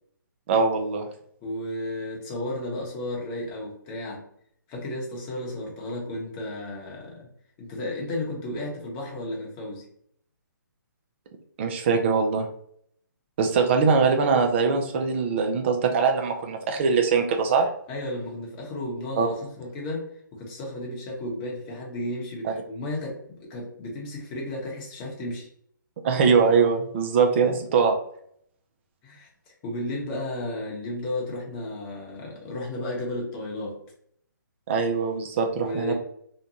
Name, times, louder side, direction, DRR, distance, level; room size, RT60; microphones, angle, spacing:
voice 1, 0.5-1.0 11.6-12.5 13.4-17.7 19.2-19.3 22.4-22.5 26.0-28.0 34.7-35.9, right 5 dB, 35° right, 4 dB, 0.5 m, -22 dB
voice 2, 1.4-4.2 4.7-7.3 7.6-9.8 17.9-20.1 20.3-25.5 29.0-33.8 35.6-35.9, left 1 dB, 25° left, -2 dB, 0.8 m, -33 dB
2.7 x 2.2 x 2.8 m, 0.67 s
hypercardioid pair, 145°, 11 cm